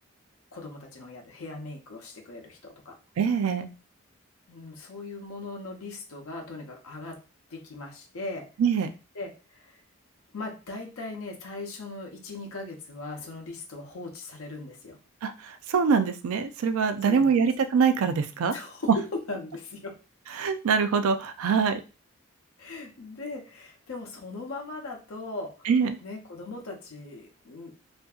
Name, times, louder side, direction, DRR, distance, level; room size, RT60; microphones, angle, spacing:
voice 1, 0.5-3.0 4.5-7.2 7.5-8.5 9.1-9.8 10.3-15.0 17.0-17.5 18.5-20.0 22.6-25.7 26.0-27.8, left 2 dB, 75° left, 2 dB, 0.6 m, -39 dB
voice 2, 3.2-3.7 8.6-8.9 15.2-18.5 20.4-21.8 25.7-26.0, right 6 dB, 80° right, 9 dB, 0.4 m, -24 dB
2.6 x 2.5 x 2.3 m, 0.32 s
head